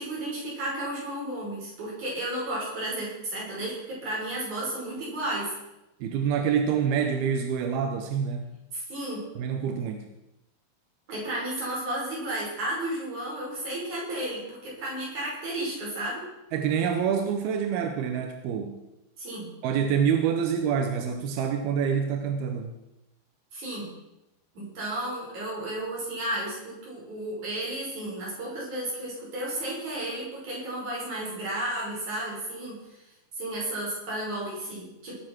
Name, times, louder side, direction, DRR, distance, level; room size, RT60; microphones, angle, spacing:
voice 1, 0.0-5.5 8.7-9.2 11.1-16.2 19.2-19.5 23.5-23.9 24.5-32.8 33.4-35.1, right 1 dB, 50° right, -5 dB, 7.3 m, -33 dB
voice 2, 6.0-8.5 9.4-10.1 16.5-18.8 19.6-22.8, right 7 dB, 90° right, 6 dB, 2.9 m, -26 dB
19.5 x 7.7 x 6.2 m, 0.91 s
omnidirectional pair, 4.3 m